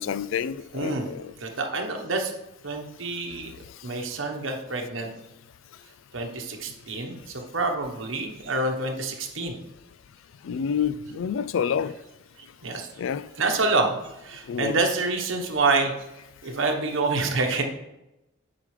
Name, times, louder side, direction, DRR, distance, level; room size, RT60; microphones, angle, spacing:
voice 1, 0.0-1.3 10.4-11.9 13.0-13.2 14.5-14.8, left 7 dB, 80° left, 0.3 m, -28 dB
voice 2, 0.7-1.1 1.4-2.3 2.6-3.5 3.8-5.1 6.1-9.6 12.6-12.9 13.4-14.0 14.2-15.9 16.4-17.6, right 3 dB, 80° right, 1.1 m, -27 dB
9.0 x 4.9 x 3.2 m
head